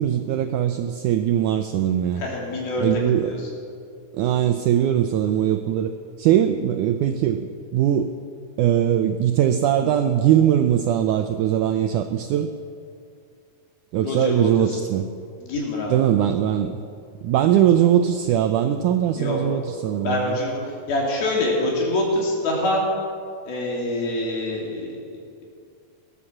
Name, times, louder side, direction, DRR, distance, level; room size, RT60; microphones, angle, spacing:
voice 1, 0.0-2.2 2.8-3.3 4.2-5.9 6.2-8.1 8.6-12.5 13.9-15.0 15.9-16.8 17.2-20.4, right 10 dB, 90° right, 8 dB, 1.7 m, -21 dB
voice 2, 2.2-3.5 14.0-14.8 15.4-16.1 19.2-19.4 20.0-20.6 20.9-22.8 23.5-25.0, left 1 dB, 85° left, -3 dB, 4.8 m, -25 dB
18.0 x 9.7 x 7.3 m, 2.3 s
omnidirectional pair, 4.2 m